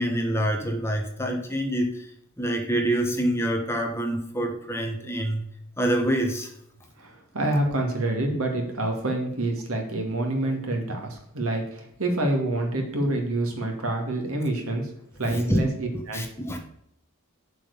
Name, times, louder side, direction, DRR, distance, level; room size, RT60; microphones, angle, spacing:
voice 1, 0.0-2.1 2.4-5.4 5.8-6.5 15.3-15.6 16.1-16.6, right 1 dB, 10° left, 3 dB, 1.2 m, -26 dB
voice 2, 7.0-14.9 15.2-16.2, right 1 dB, 70° right, 2 dB, 2.5 m, -27 dB
7.3 x 6.1 x 6.9 m, 0.73 s
head